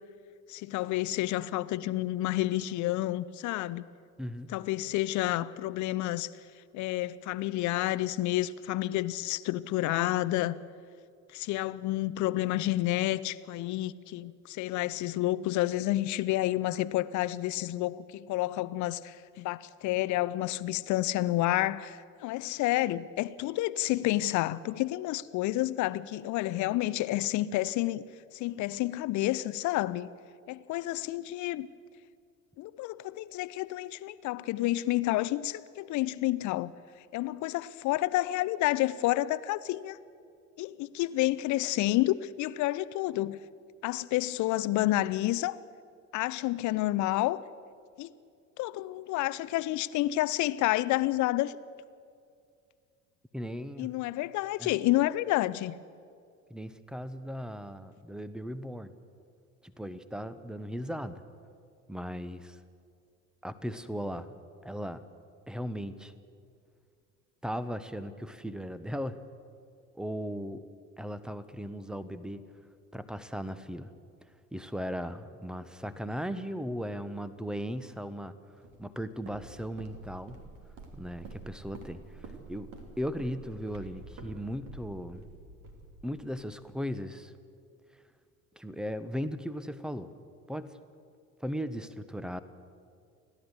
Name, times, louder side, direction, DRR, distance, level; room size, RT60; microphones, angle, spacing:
voice 1, 0.5-3.8 4.5-6.3 6.7-10.6 11.3-28.0 28.3-30.1 30.5-31.7 32.6-36.7 37.1-40.0 40.6-43.4 43.8-45.6 46.1-47.4 48.0-48.1 48.6-51.6 53.8-55.8, left 16 dB, 45° left, 0.8 m, -29 dB
voice 2, 4.2-4.5 53.3-54.0 54.6-54.8 56.5-58.9 59.6-61.2 61.9-62.6 63.4-64.3 64.6-65.0 65.5-66.1 67.4-69.2 69.9-70.6 71.0-72.4 72.9-73.9 74.5-78.4 78.8-80.4 80.9-85.2 86.0-87.3 88.5-90.1 90.5-90.7 91.4-92.4, equal, ahead, 1.1 m, -37 dB
Walk footsteps, 78.6-86.5, right 3 dB, 50° right, 3.1 m, -48 dB
30.0 x 11.5 x 8.1 m
figure-of-eight pair, 65°, 42 cm